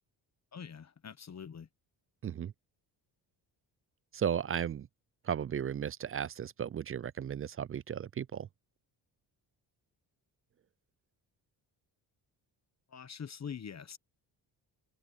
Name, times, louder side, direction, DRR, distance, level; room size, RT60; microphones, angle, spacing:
voice 1, 0.5-1.7 12.9-14.0, left 7 dB, 40° left, 1.2 m, -44 dB
voice 2, 4.1-4.9 5.3-8.5, right 8 dB, 35° right, 0.4 m, -35 dB
cardioid pair, 90°, 43 cm